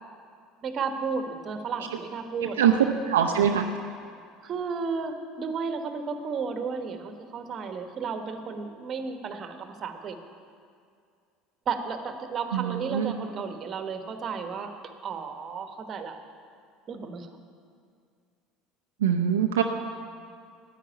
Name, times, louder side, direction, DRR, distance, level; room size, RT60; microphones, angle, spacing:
voice 1, 0.6-3.0 4.4-10.2 11.7-16.2 16.9-17.3, right 5 dB, 45° right, 7 dB, 1.3 m, -33 dB
voice 2, 2.6-3.7 12.5-13.1 19.0-19.6, right 8 dB, 80° right, 3 dB, 0.6 m, -23 dB
10.0 x 9.4 x 8.9 m, 2.3 s
hypercardioid pair, 70°, 0 cm